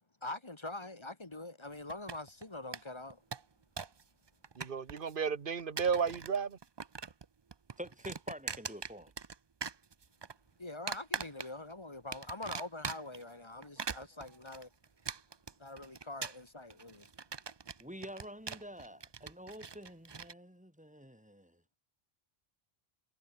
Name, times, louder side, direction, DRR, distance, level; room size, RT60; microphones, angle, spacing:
voice 1, 0.2-3.2 10.6-14.7 15.6-17.1, left 2 dB, 30° left, 1.4 m, -44 dB
sound 1, 1.9-2.4 2.7-2.8 3.1-4.0 4.3-5.1 5.6-6.4 6.6-7.3 7.5-9.4 9.6-10.3 10.9-11.7 12.1-13.2 13.6-20.3, right 5 dB, 30° right, 0.5 m, -42 dB
voice 2, 4.6-6.6, right 6 dB, 60° right, 1.4 m, -33 dB
voice 3, 7.8-9.1 17.8-21.6, equal, 5° right, 3.2 m, -47 dB
omnidirectional pair, 1.0 m